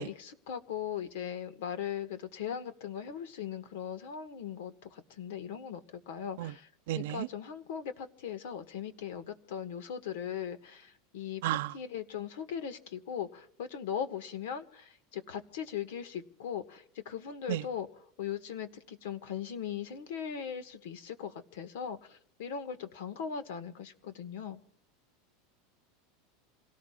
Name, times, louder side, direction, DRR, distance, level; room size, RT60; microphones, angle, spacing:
voice 1, 0.0-6.7 6.9-24.6, left 8 dB, 75° left, 1.7 m, -39 dB
voice 2, 6.9-7.3 11.4-11.7 17.5-17.6, right 15 dB, 75° right, 0.5 m, -32 dB
28.0 x 18.0 x 2.5 m
supercardioid pair, 150°, 0 cm